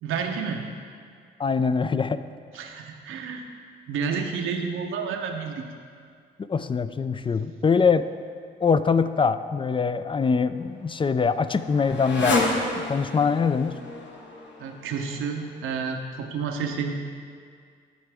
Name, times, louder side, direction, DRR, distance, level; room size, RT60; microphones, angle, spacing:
voice 1, 0.0-0.6 2.5-3.5 3.9-5.7 14.6-16.9, right 6 dB, 75° right, 3 dB, 0.8 m, -30 dB
voice 2, 1.4-2.2 6.5-8.1 8.6-12.4 12.8-13.8, left 5 dB, 25° left, 12 dB, 0.4 m, -23 dB
Motorcycle, 10.2-15.6, left 2 dB, 60° left, 1.2 m, -31 dB
12.0 x 4.8 x 3.5 m, 2.1 s
supercardioid pair, 50°, 21 cm